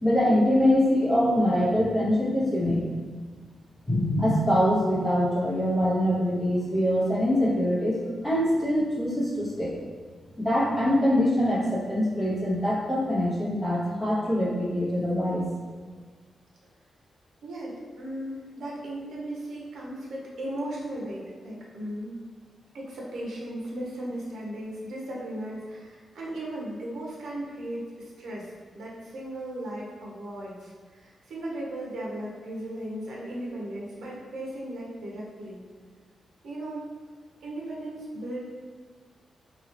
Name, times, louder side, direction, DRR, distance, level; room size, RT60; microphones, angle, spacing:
voice 1, 0.0-2.8 3.9-9.7 10.4-15.5, equal, 10° left, -10 dB, 1.2 m, -24 dB
voice 2, 17.4-22.2 22.7-35.6 36.4-36.9 37.4-38.4, right 1 dB, 80° right, -4 dB, 0.8 m, -36 dB
3.0 x 2.7 x 2.9 m, 1.5 s
wide cardioid pair, 145°, 0 cm